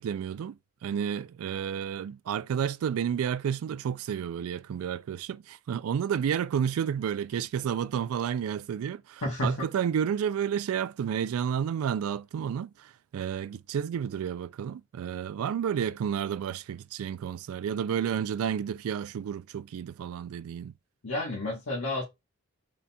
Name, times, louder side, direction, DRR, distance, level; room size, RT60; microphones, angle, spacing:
voice 1, 0.0-20.7, right 8 dB, 80° right, 0.3 m, -31 dB
voice 2, 9.2-9.5 21.0-22.0, left 1 dB, 80° left, 1.3 m, -30 dB
3.8 x 2.3 x 4.1 m
head